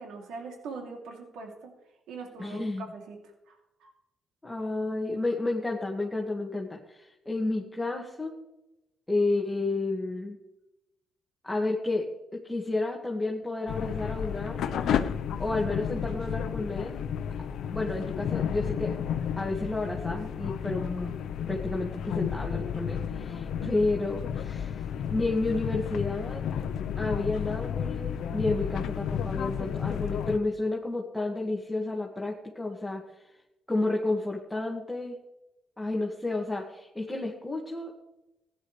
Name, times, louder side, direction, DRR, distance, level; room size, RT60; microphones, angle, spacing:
voice 1, 0.0-1.7 2.1-3.2 3.5-3.9, right 4 dB, 85° right, 1 dB, 2.8 m, -42 dB
voice 2, 2.4-2.9 4.4-8.4 9.1-10.4 11.4-15.0 15.4-17.1 17.7-19.0 19.4-21.2 21.5-26.4 27.0-33.0 33.7-35.2 35.8-37.9, left 2 dB, 10° left, -1 dB, 1.9 m, -31 dB
sound 1, 13.7-30.4, left 8 dB, 75° left, 0.7 m, -32 dB
16.0 x 11.0 x 3.3 m, 0.93 s
cardioid pair, 90°, 0 cm